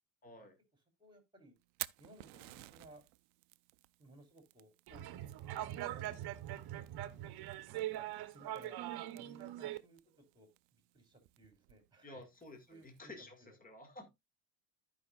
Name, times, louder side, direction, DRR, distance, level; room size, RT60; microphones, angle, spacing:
voice 1, 0.2-0.6 12.0-14.1, left 2 dB, 15° left, 2.1 m, -52 dB
voice 2, 1.0-1.5 2.0-3.0 4.0-5.3 5.6-6.2 7.0-7.4 8.3-8.8 9.1-12.2 12.7-13.6, right 1 dB, 10° right, 3.2 m, -60 dB
Fire, 1.6-13.0, right 22 dB, 85° right, 0.6 m, -54 dB
sound 1, 4.9-9.8, right 13 dB, 50° right, 1.1 m, -42 dB
14.5 x 5.3 x 2.4 m
supercardioid pair, 100°, 48 cm